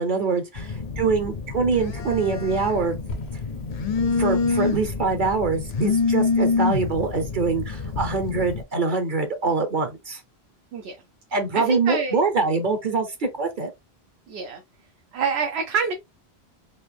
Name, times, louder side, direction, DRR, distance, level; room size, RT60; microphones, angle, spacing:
voice 1, 0.0-2.9 4.2-10.2 11.3-13.7, right 4 dB, 55° right, 0.8 m, -24 dB
Telephone, 0.6-8.6, left 4 dB, 50° left, 0.5 m, -26 dB
sound 1, 3.1-7.5, left 2 dB, 85° left, 1.3 m, -43 dB
voice 2, 11.5-12.2 14.3-14.6 15.1-15.9, right 6 dB, 80° right, 0.9 m, -26 dB
4.0 x 2.5 x 3.3 m
omnidirectional pair, 1.1 m